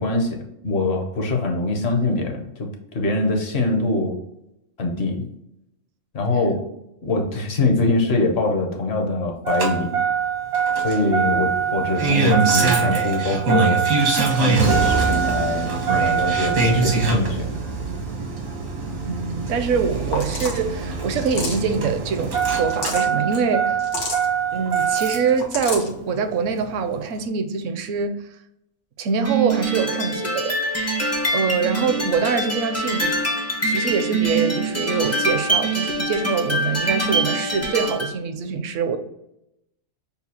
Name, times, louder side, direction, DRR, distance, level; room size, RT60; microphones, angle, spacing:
voice 1, 0.0-2.7 2.9-4.2 4.8-5.3 6.1-6.6 7.0-10.0 10.8-13.8 14.3-17.5, left 2 dB, 55° left, 0.9 m, -23 dB
Engine starting, 9.5-25.4 26.6-26.7, right 5 dB, 85° right, 1.6 m, -22 dB
voice 2, 19.0-23.8 24.5-28.2 29.0-30.6 31.3-33.2 33.7-39.0, right 5 dB, 70° right, 0.9 m, -24 dB
sound 1, 19.8-19.9 20.1-20.6 21.2-21.7 22.5-23.1 23.8-24.3 25.2-25.9, left 3 dB, 85° left, 1.5 m, -29 dB
sound 2, 29.2-38.1, right 2 dB, 20° left, 0.4 m, -24 dB
6.8 x 2.3 x 2.8 m
omnidirectional pair, 1.5 m